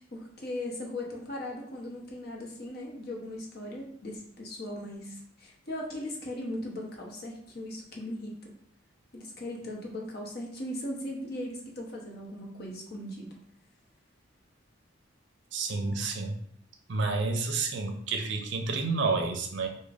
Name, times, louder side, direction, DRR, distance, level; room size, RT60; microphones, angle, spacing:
voice 1, 0.0-8.5 9.1-13.3, left 1 dB, 50° left, -1 dB, 0.8 m, -38 dB
voice 2, 15.5-16.3 16.9-19.7, right 3 dB, 65° right, 4 dB, 0.5 m, -29 dB
4.9 x 2.1 x 2.4 m, 0.64 s
head